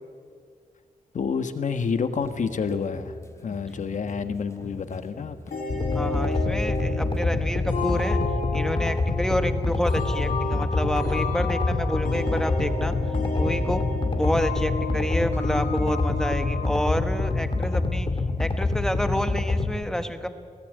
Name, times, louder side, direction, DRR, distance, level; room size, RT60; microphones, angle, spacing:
voice 1, 1.1-5.5, left 5 dB, 60° left, 9 dB, 1.3 m, -29 dB
sound 1, 2.2-7.2, left 2 dB, 20° left, 1.3 m, -44 dB
sound 2, 5.5-17.9, left 3 dB, 75° left, 6.2 m, -32 dB
sound 3, 5.7-19.7, left 3 dB, 35° left, 1.7 m, -26 dB
voice 2, 5.9-8.2 8.5-12.9 13.3-13.8 14.2-18.1 18.4-20.3, equal, 5° left, 8 dB, 1.2 m, -29 dB
21.0 x 18.0 x 9.2 m, 2.2 s
wide cardioid pair, 160°, 14 cm